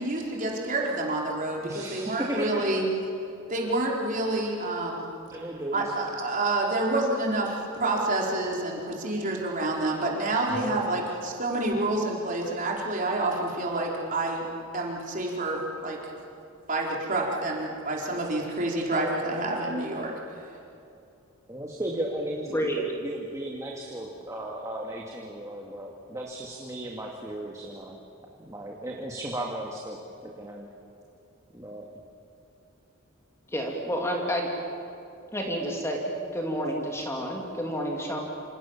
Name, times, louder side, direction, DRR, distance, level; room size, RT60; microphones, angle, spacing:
voice 1, 0.0-2.8 3.5-5.1 5.7-14.4 14.7-16.0 16.7-20.1, right 2 dB, 35° right, -1 dB, 4.5 m, -28 dB
voice 2, 1.6-2.6 5.3-5.9 10.5-10.8 21.5-28.0 28.4-30.7 31.5-31.9, right 1 dB, 15° right, -1 dB, 2.3 m, -36 dB
voice 3, 22.5-22.8 33.5-34.5 35.3-38.2, equal, 10° left, 0 dB, 3.0 m, -29 dB
28.0 x 27.5 x 7.4 m, 2.7 s
head